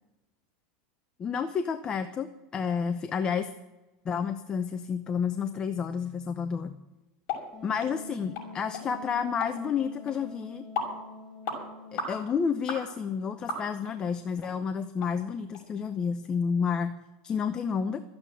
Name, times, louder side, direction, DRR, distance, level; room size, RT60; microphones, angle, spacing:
voice 1, 1.2-3.5 4.0-6.7 7.6-10.6 11.9-17.0 17.2-18.0, left 6 dB, 25° left, 9 dB, 0.8 m, -30 dB
sound 1, 7.3-7.4 7.8-7.9 8.4-8.5 8.7-8.9 9.4-9.5 10.1-10.2 10.8-10.9 11.4-11.6 12.0-12.2 12.7-12.8 13.5-13.9 14.4-14.5 15.0-15.1 15.5-15.6, left 4 dB, 45° left, 6.3 m, -33 dB
Wind instrument woodwind instrument, 7.5-12.3, left 4 dB, 5° left, 2.4 m, -45 dB
13.5 x 8.8 x 8.9 m, 1.1 s
supercardioid pair, 140°, 3 cm